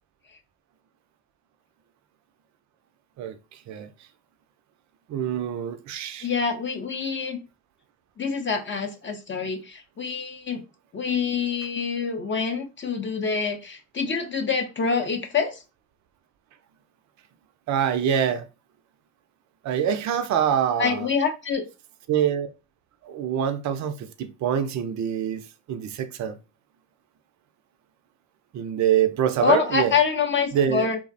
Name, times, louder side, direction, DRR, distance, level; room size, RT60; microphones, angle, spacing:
voice 1, 3.2-3.9 5.1-6.3 17.7-18.5 19.6-21.1 22.1-22.5 23.0-26.4 28.5-29.9 30.5-30.9, right 9 dB, 50° right, 0.5 m, -25 dB
voice 2, 6.2-7.4 8.2-10.6 10.9-15.6 20.8-21.6 29.4-31.0, left 6 dB, 30° left, 0.5 m, -26 dB
2.4 x 2.0 x 2.5 m
supercardioid pair, 60°, 37 cm